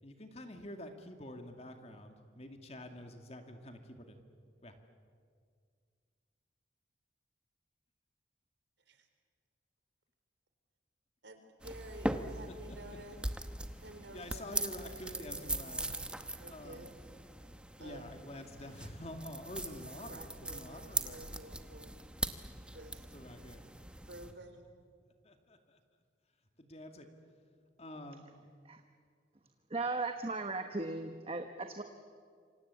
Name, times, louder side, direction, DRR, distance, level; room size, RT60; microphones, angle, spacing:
voice 1, 0.0-4.2 4.6-4.7 12.7-12.8 13.7-13.8 14.1-15.9 16.5-16.9 17.8-21.5 23.1-23.6 24.2-24.3 25.2-25.8 26.6-27.1 27.8-28.2, left 1 dB, 35° left, 5 dB, 2.3 m, -48 dB
voice 2, 11.2-13.2 13.8-16.1 16.4-17.0 17.4-18.1 19.5-22.0 22.7-23.1 24.1-24.6, right 1 dB, 70° right, 6 dB, 4.0 m, -52 dB
sound 1, 11.6-24.3, right 1 dB, 5° right, 1.0 m, -41 dB
voice 3, 29.7-31.8, right 3 dB, 30° right, 6 dB, 1.2 m, -37 dB
27.5 x 25.5 x 8.4 m, 2.1 s
head